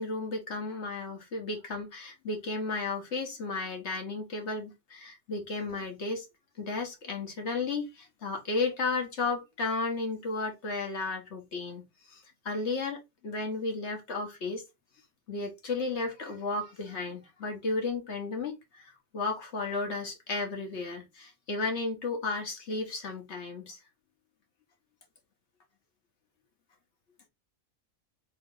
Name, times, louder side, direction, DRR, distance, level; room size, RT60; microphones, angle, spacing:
voice 1, 0.0-6.3 6.6-14.6 15.3-23.8, left 3 dB, 55° left, 1.4 m, -34 dB
3.2 x 2.9 x 3.7 m
omnidirectional pair, 1.4 m